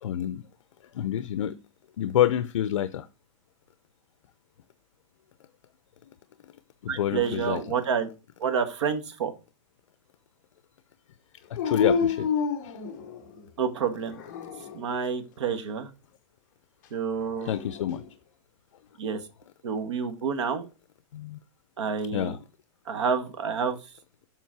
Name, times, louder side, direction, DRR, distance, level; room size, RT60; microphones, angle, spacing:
voice 1, 0.0-0.4 0.9-1.5 2.0-3.1 6.8-7.6 11.5-12.3 12.6-12.8 17.4-18.0 21.1-21.4 22.1-22.4, left 10 dB, 65° left, 0.6 m, -27 dB
voice 2, 6.9-8.1 8.4-9.3 13.6-14.2 14.7-15.9 16.9-17.5 19.0-19.2 19.6-20.7 21.8-22.4 22.9-23.8, right 6 dB, 60° right, 1.6 m, -28 dB
Dog, 11.6-13.5 14.1-14.9 17.2-18.0, left 6 dB, 35° left, 1.0 m, -29 dB
7.6 x 5.5 x 4.6 m
supercardioid pair, 180°, 17 cm